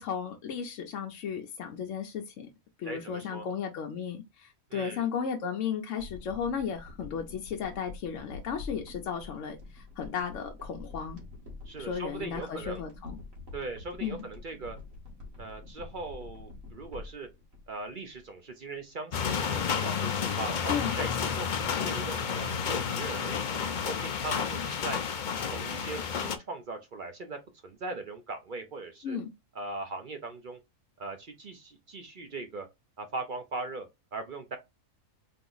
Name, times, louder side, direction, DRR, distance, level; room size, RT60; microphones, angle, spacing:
voice 1, 0.0-2.5 2.8-11.2 11.8-13.2 14.0-14.2 20.7-21.0 29.0-29.3, left 7 dB, 70° left, 0.9 m, -35 dB
voice 2, 2.9-3.5 4.7-5.0 11.7-12.8 13.5-14.8 15.4-17.3 17.7-25.0 25.4-29.2 29.5-30.6 31.0-32.7 33.0-34.6, right 3 dB, 50° right, 0.7 m, -40 dB
sound 1, 6.0-18.5 18.7-18.8, left 3 dB, 70° right, 1.9 m, -46 dB
sound 2, 19.1-26.4, left 6 dB, 55° left, 0.5 m, -31 dB
3.8 x 2.9 x 3.8 m
omnidirectional pair, 1.4 m